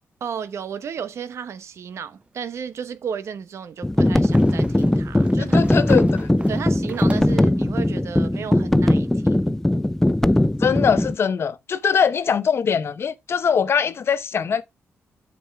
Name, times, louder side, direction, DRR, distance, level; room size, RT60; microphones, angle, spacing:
voice 1, 0.2-5.6 6.5-9.6, right 7 dB, 70° right, 0.9 m, -33 dB
sound 1, 2.2-2.3 4.2-7.5, right 2 dB, 25° right, 0.9 m, -40 dB
sound 2, 3.8-11.2, left 1 dB, 10° left, 0.4 m, -19 dB
voice 2, 5.4-6.3 10.6-14.6, left 7 dB, 55° left, 0.8 m, -22 dB
7.9 x 6.2 x 3.5 m
cardioid pair, 90°, 5 cm